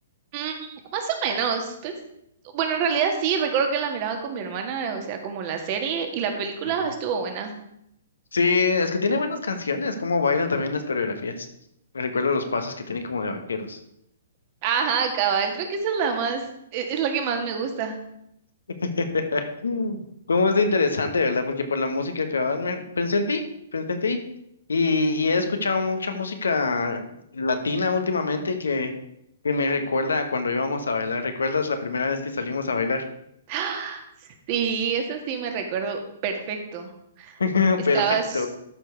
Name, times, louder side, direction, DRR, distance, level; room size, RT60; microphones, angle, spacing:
voice 1, 0.3-1.9 2.5-7.5 14.6-16.5 16.7-18.0 33.5-34.0 34.5-36.9 37.2-37.4 37.9-38.5, right 6 dB, 40° right, 5 dB, 1.7 m, -26 dB
voice 2, 8.3-11.5 11.9-13.8 18.8-20.0 20.3-23.5 23.7-24.2 24.7-27.0 27.3-28.9 29.4-33.0 37.4-38.0 38.3-38.5, left 4 dB, 85° left, 7 dB, 1.3 m, -24 dB
12.5 x 4.7 x 4.7 m, 0.77 s
hypercardioid pair, 130°, 0 cm